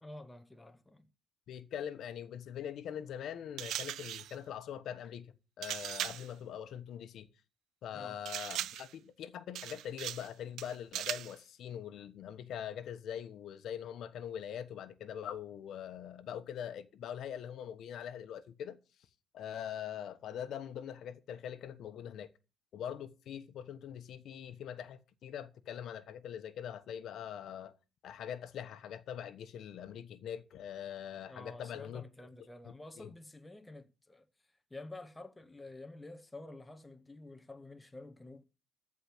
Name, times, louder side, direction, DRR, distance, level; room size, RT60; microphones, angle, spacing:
voice 1, 0.0-1.1 7.9-8.2 31.3-34.3 34.7-38.4, left 2 dB, 10° left, 0.9 m, -50 dB
voice 2, 1.5-7.3 7.8-18.8 19.3-22.3 22.7-27.7 28.0-32.0 33.0-33.1, left 9 dB, 55° left, 1.1 m, -43 dB
sound 1, 3.6-4.4 5.6-6.3 8.3-8.9 9.5-10.3 10.6-11.4, right 12 dB, 65° right, 0.5 m, -39 dB
14.5 x 4.9 x 8.2 m
cardioid pair, 160°, 0 cm